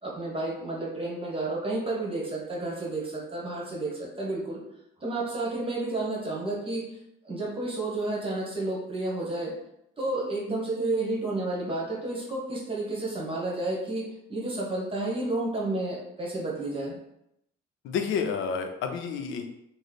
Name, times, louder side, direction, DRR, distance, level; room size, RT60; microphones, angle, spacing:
voice 1, 0.0-4.6 5.0-6.9 7.2-9.5 10.0-17.0, right 2 dB, 25° right, -3 dB, 1.1 m, -31 dB
voice 2, 17.8-19.4, left 6 dB, 85° left, 5 dB, 0.5 m, -29 dB
3.1 x 2.0 x 4.0 m, 0.78 s
cardioid pair, 90°, 20 cm